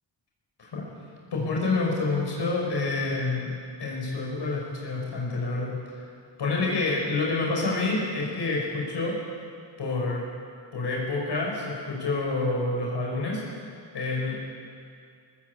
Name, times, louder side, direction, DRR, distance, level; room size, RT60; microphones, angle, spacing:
voice 1, 1.3-5.7 6.4-9.2 9.8-10.2 10.7-13.4 13.9-14.4, left 3 dB, 65° left, -3 dB, 6.4 m, -28 dB
19.5 x 15.5 x 8.6 m, 2.3 s
cardioid pair, 65°, 45 cm